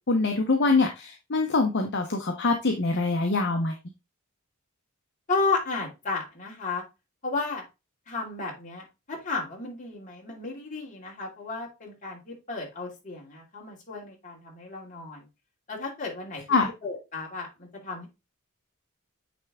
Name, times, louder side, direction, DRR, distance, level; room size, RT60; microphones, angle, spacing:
voice 1, 0.1-3.7 16.5-16.7, left 3 dB, 55° left, 3 dB, 0.9 m, -24 dB
voice 2, 5.3-6.8 7.2-7.6 8.1-15.3 15.7-18.1, left 3 dB, 35° left, -1 dB, 2.6 m, -33 dB
8.9 x 3.4 x 3.5 m, 0.25 s
head